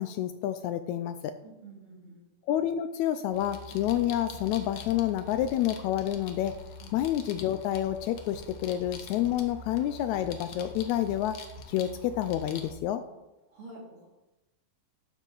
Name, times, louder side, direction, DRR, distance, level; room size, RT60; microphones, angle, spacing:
voice 1, 0.0-1.3 2.5-6.6 6.9-11.4 11.7-13.0, left 12 dB, 85° left, 11 dB, 1.6 m, -29 dB
voice 2, 1.4-2.2 6.8-6.9 13.5-14.1, right 2 dB, 40° right, -2 dB, 3.1 m, -48 dB
sound 1, 3.3-12.7, left 3 dB, 65° left, 1.2 m, -45 dB
11.5 x 10.5 x 3.9 m, 1.0 s
omnidirectional pair, 3.8 m